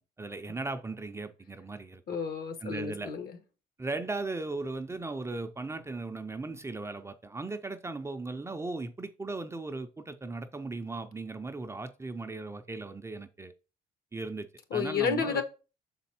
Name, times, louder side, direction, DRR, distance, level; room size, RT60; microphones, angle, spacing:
voice 1, 0.2-2.0 2.6-3.1 3.8-13.5 14.1-15.4, right 3 dB, 15° right, 0.5 m, -37 dB
voice 2, 2.1-3.4 14.7-15.4, left 6 dB, 60° left, 1.3 m, -31 dB
6.4 x 4.1 x 4.3 m
cardioid pair, 110°, 17 cm